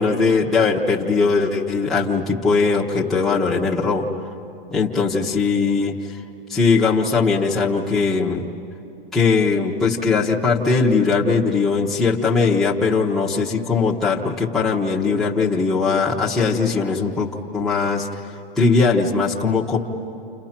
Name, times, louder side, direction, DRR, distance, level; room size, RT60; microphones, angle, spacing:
voice 1, 0.0-4.1 4.7-6.2 6.5-8.5 9.1-18.3 18.6-19.8, left 4 dB, ahead, -6 dB, 0.9 m, -20 dB
29.5 x 29.0 x 5.9 m, 2.8 s
supercardioid pair, 170°, 29 cm